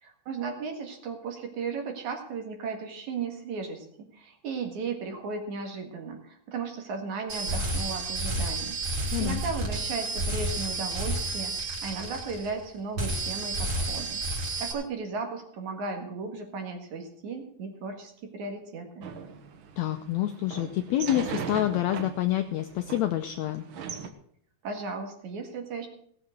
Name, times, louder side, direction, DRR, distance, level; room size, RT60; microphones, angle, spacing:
voice 1, 0.0-14.2 14.6-19.1 24.6-25.9, right 4 dB, 60° right, 4 dB, 3.1 m, -36 dB
sound 1, 7.3-12.7 13.0-14.7, right 2 dB, 35° right, 3.7 m, -31 dB
sound 2, 19.0-24.1, right 6 dB, 90° right, 1.1 m, -39 dB
voice 2, 19.8-23.6, left 13 dB, 85° left, 8 dB, 1.6 m, -27 dB
17.0 x 7.7 x 6.3 m, 0.65 s
omnidirectional pair, 3.9 m